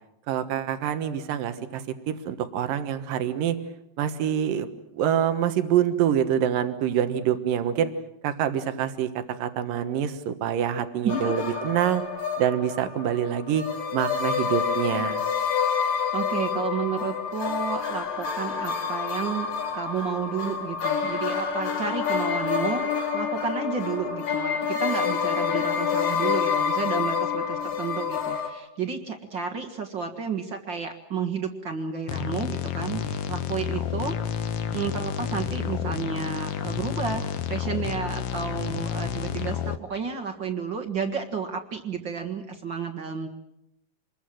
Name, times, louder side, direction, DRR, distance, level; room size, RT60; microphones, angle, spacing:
voice 1, 0.3-3.6 4.0-4.7 4.9-7.9 8.2-12.0 12.4-13.7 13.9-15.2, right 10 dB, 80° right, 10 dB, 3.0 m, -26 dB
voice 2, 11.0-11.5 16.1-19.5 19.7-43.3, right 5 dB, 45° right, 4 dB, 1.8 m, -31 dB
sound 1, 11.1-28.5, left 6 dB, 90° left, 4.5 m, -28 dB
sound 2, 32.1-39.8, left 9 dB, 65° left, 1.5 m, -30 dB
27.0 x 21.5 x 7.7 m, 0.83 s
omnidirectional pair, 3.9 m